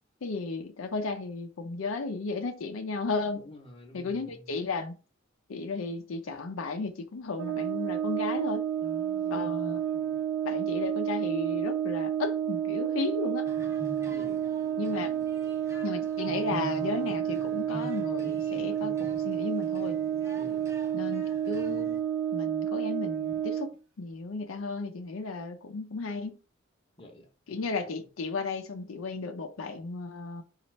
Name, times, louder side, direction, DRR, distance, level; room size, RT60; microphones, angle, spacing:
voice 1, 0.2-3.5 3.9-4.9 5.5-8.7 9.3-9.8 10.4-13.5 14.8-15.1 15.8-20.0 20.9-21.9 22.3-26.4 27.5-30.4, left 3 dB, 90° left, 0.5 m, -34 dB
voice 2, 3.3-4.5 8.8-10.2 14.1-14.5 20.4-20.6 27.0-27.9, left 1 dB, 30° left, 0.8 m, -49 dB
Brass instrument, 7.4-23.8, right 10 dB, 80° right, 0.5 m, -30 dB
sound 1, 13.4-22.0, right 2 dB, 15° right, 0.6 m, -45 dB
4.0 x 2.4 x 3.2 m
head